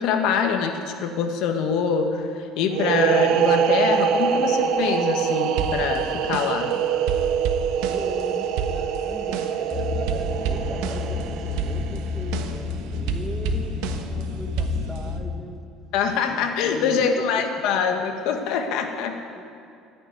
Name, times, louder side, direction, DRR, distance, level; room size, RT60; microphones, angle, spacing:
voice 1, 0.0-6.7 15.9-19.2, left 6 dB, 65° left, 5 dB, 1.5 m, -24 dB
sound 1, 2.7-12.2, right 8 dB, 60° right, 0.8 m, -24 dB
sound 2, 5.6-6.7 7.1-9.7 10.1-11.2 11.5-14.2 14.6-15.2, right 6 dB, 90° right, 1.2 m, -30 dB
voice 2, 7.9-15.7 16.2-17.3 19.3-19.4, equal, 5° right, 3 dB, 1.4 m, -39 dB
sound 3, 9.7-15.2, left 5 dB, 25° left, 2.0 m, -30 dB
14.0 x 9.9 x 9.4 m, 2.5 s
cardioid pair, 155°, 0 cm